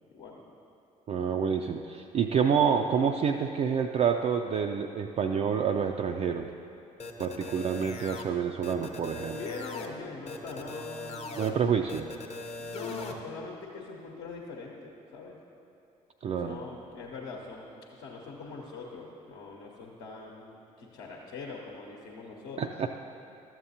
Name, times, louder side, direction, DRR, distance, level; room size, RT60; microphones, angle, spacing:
voice 1, 0.1-0.4 9.3-11.4 12.6-15.4 16.4-22.8, left 4 dB, 60° left, -2 dB, 0.9 m, -42 dB
voice 2, 1.1-6.5 7.2-9.4 11.4-12.1 16.2-16.6 22.6-22.9, right 7 dB, 35° right, 3 dB, 0.4 m, -28 dB
sound 1, 7.0-8.2 8.6-9.9 10.3-11.5 11.9-13.1, left 3 dB, 35° left, 0.8 m, -40 dB
12.5 x 7.5 x 2.8 m, 2.7 s
figure-of-eight pair, 45°, 19 cm